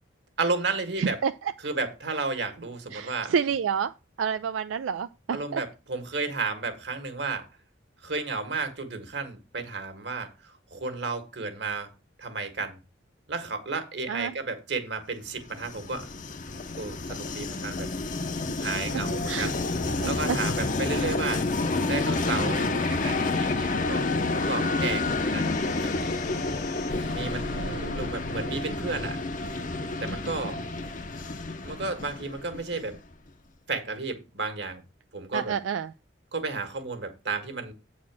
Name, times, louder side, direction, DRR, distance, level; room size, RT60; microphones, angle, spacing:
voice 1, 0.4-1.2 1.6-3.3 5.3-7.4 8.0-11.9 12.2-12.8 13.3-16.1 16.8-17.9 18.6-19.6 20.0-21.4 21.9-26.2 27.1-27.5 27.9-29.2 30.0-30.6 31.6-33.0 33.7-34.8 35.1-35.5 36.3-37.7, right 3 dB, 60° right, 1.6 m, -32 dB
voice 2, 1.0-1.5 2.9-5.6 14.1-14.3 18.5-19.5 20.0-20.4 21.0-21.1 27.5-28.0 35.3-35.9, right 7 dB, 90° right, 0.4 m, -30 dB
Train, 15.4-33.1, left 3 dB, 45° left, 0.7 m, -29 dB
sound 1, 25.3-29.6, left 1 dB, 70° left, 1.4 m, -41 dB
8.5 x 4.3 x 6.0 m
head